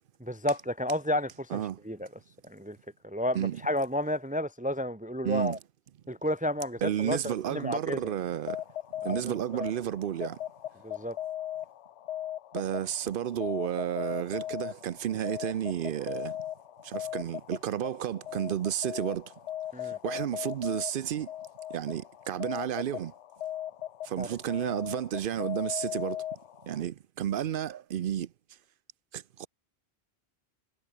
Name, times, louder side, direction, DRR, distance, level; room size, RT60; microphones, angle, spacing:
voice 1, 0.2-2.1 2.4-2.8 3.0-5.6 6.1-8.1 9.0-9.6 10.8-11.2 19.7-20.0 24.2-24.3, left 1 dB, 5° right, 1.1 m, -32 dB
voice 2, 5.2-5.6 6.8-8.6 9.0-10.4 12.5-16.4 16.8-19.3 19.8-21.3 21.7-23.1 24.0-26.2 26.6-28.3 29.1-29.5, right 10 dB, 60° right, 0.7 m, -32 dB
sound 1, 8.3-26.8, left 12 dB, 85° left, 1.0 m, -39 dB
omnidirectional pair, 1.1 m